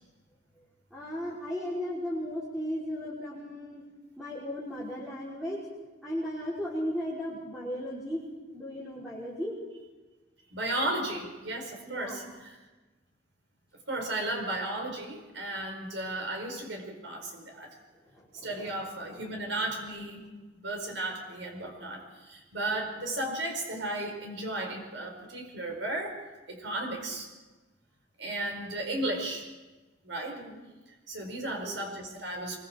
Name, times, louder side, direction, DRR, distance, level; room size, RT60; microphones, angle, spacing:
voice 1, 0.9-3.8 4.2-5.6 6.0-8.2 8.5-9.6 11.9-12.2 18.1-18.8 19.1-19.2 30.3-30.6 31.4-31.9, equal, 5° right, -7 dB, 5.0 m, -36 dB
voice 2, 10.5-12.6 13.9-17.7 18.4-20.2 20.6-26.2 26.5-27.3 28.2-29.5 30.0-30.4 31.1-32.6, right 1 dB, 90° right, 2 dB, 5.0 m, -34 dB
24.5 x 24.0 x 4.6 m, 1.2 s
head